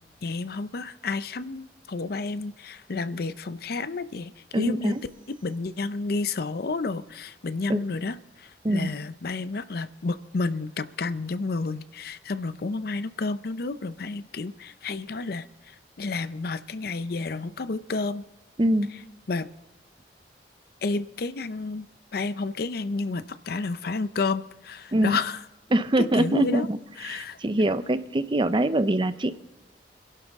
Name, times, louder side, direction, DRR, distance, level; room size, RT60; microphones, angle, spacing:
voice 1, 0.2-4.9 5.3-18.2 19.3-19.5 20.8-21.9 22.1-25.4 26.0-26.7 27.0-27.4, left 3 dB, 60° left, 13 dB, 0.6 m, -31 dB
voice 2, 4.5-4.9 7.7-7.8 8.6-8.9 18.6-18.9 24.9-25.2 25.7-26.8 27.1-29.3, right 1 dB, 30° right, 12 dB, 0.6 m, -23 dB
25.5 x 11.5 x 3.6 m, 0.96 s
head